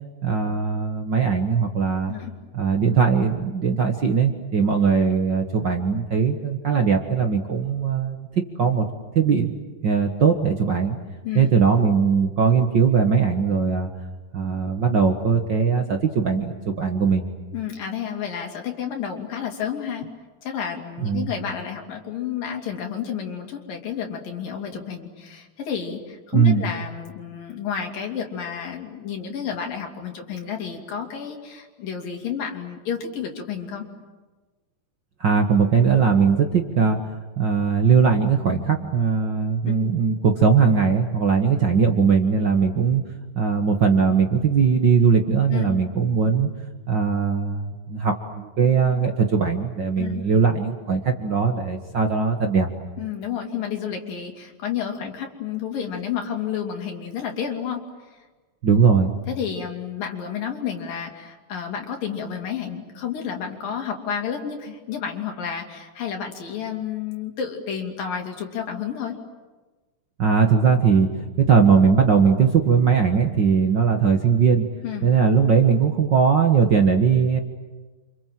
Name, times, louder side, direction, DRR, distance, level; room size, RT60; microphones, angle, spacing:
voice 1, 0.2-2.1 2.5-8.3 8.6-8.8 9.1-9.6 9.8-11.0 11.3-13.9 14.3-17.2 21.0-21.3 26.3-26.6 35.2-43.1 43.3-46.5 46.9-52.7 58.6-59.1 70.2-74.7 75.0-77.4, right 6 dB, 50° right, 4 dB, 1.4 m, -20 dB
voice 2, 17.5-20.1 20.4-33.9 39.6-39.7 45.5-45.7 50.0-50.2 53.0-57.8 58.1-58.2 58.7-58.8 59.3-69.2 74.8-75.1, left 8 dB, 70° left, 2 dB, 4.4 m, -31 dB
29.5 x 26.5 x 7.6 m, 1.3 s
omnidirectional pair, 4.1 m